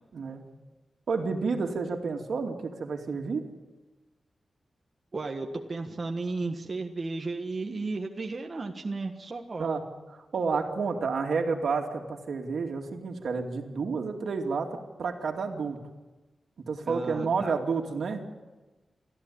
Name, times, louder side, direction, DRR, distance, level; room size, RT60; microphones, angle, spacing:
voice 1, 0.1-0.4 1.1-3.4 9.6-9.8 10.1-15.8 16.7-18.2, right 4 dB, 75° right, 3 dB, 2.5 m, -30 dB
voice 2, 5.1-9.7 16.9-17.5, right 3 dB, 35° right, 2 dB, 1.5 m, -34 dB
29.0 x 13.5 x 8.8 m, 1.2 s
wide cardioid pair, 140°, 0 cm